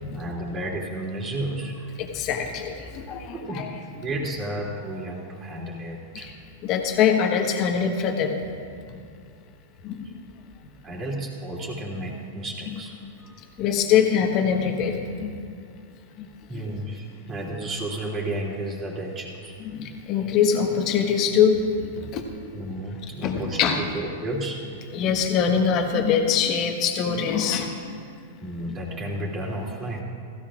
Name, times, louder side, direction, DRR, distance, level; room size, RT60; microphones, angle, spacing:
voice 1, 0.1-1.9 3.3-6.3 10.8-13.4 16.5-19.6 22.5-24.6 28.4-30.0, right 1 dB, 30° right, -3 dB, 3.0 m, -32 dB
voice 2, 2.0-3.7 6.2-6.3 6.6-8.4 9.8-10.1 13.6-15.4 16.2-16.3 19.7-22.2 23.2-23.8 24.9-27.9, left 7 dB, 45° left, 3 dB, 1.4 m, -23 dB
16.5 x 15.0 x 2.5 m, 2.3 s
hypercardioid pair, 105°, 0 cm